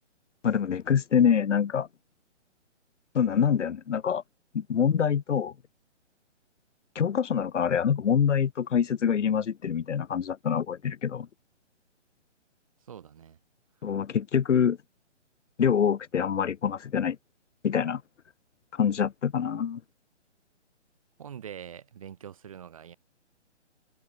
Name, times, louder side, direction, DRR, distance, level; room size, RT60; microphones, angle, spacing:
voice 1, 0.4-1.9 3.1-4.2 4.5-5.5 6.9-11.3 13.8-14.8 15.6-17.2 17.6-18.0 18.7-19.8, left 8 dB, 80° left, 0.9 m, -25 dB
voice 2, 12.9-13.4 21.2-23.0, right 8 dB, 30° right, 3.2 m, -44 dB
hypercardioid pair, 180°, 36 cm